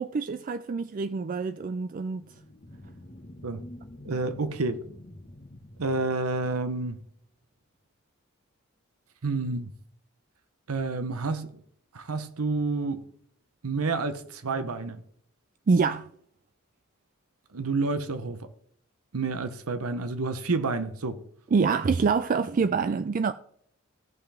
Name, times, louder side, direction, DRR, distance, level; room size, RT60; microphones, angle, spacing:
voice 1, 0.0-2.2 15.7-16.1 21.5-23.3, right 5 dB, 40° right, 0.3 m, -26 dB
sound 1, 2.1-7.1, left 1 dB, 40° left, 1.2 m, -47 dB
voice 2, 4.0-4.8 5.8-7.0 9.2-9.7 10.7-11.5 11.9-13.1 13.6-15.0 17.5-18.5 19.1-21.2, right 3 dB, 90° right, 0.8 m, -29 dB
16.0 x 5.7 x 3.4 m
head